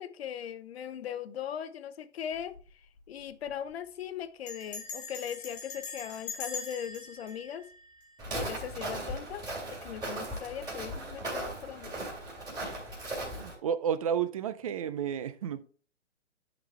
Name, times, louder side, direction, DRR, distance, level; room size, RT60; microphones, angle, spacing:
voice 1, 0.0-2.6 3.1-7.7 8.3-12.0, left 9 dB, 55° left, 0.7 m, -39 dB
Bell, 2.3-2.7 3.0-3.1 3.3-3.7 4.5-8.6, left 5 dB, 20° left, 1.6 m, -43 dB
Walk footsteps, 8.2-13.5, right 1 dB, 10° right, 3.0 m, -37 dB
voice 2, 13.2-15.6, right 8 dB, 30° right, 0.4 m, -32 dB
10.5 x 4.1 x 3.3 m
hypercardioid pair, 135°, 36 cm